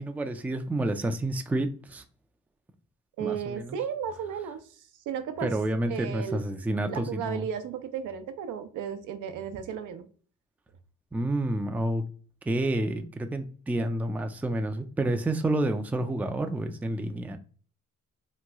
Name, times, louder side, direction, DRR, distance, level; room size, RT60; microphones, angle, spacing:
voice 1, 0.0-2.0 3.2-3.8 5.4-7.5 11.1-12.0 12.5-17.4, right 1 dB, 5° right, 0.3 m, -29 dB
voice 2, 3.2-4.6 5.1-5.5 5.9-6.4 6.9-10.1, right 7 dB, 85° right, 0.6 m, -34 dB
3.0 x 2.2 x 3.4 m
cardioid pair, 90°, 30 cm